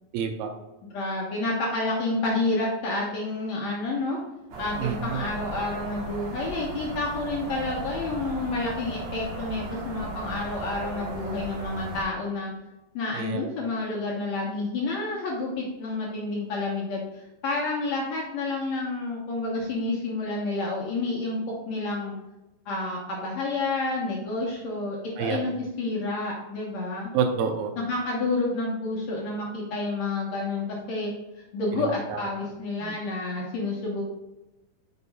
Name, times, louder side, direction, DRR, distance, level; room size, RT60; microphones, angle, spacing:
voice 1, 0.1-0.6 4.8-5.2 13.1-13.5 25.2-25.4 27.1-27.7 32.8-32.9, right 6 dB, 80° right, 6 dB, 2.5 m, -27 dB
voice 2, 0.9-4.2 4.6-12.5 12.9-21.4 21.7-22.1 22.7-27.1 27.8-31.1 31.5-34.0, left 2 dB, 60° left, -3 dB, 2.0 m, -29 dB
sound 1, 4.5-12.0, right 2 dB, 55° right, 2.3 m, -36 dB
8.5 x 6.8 x 2.4 m, 1.0 s
omnidirectional pair, 4.4 m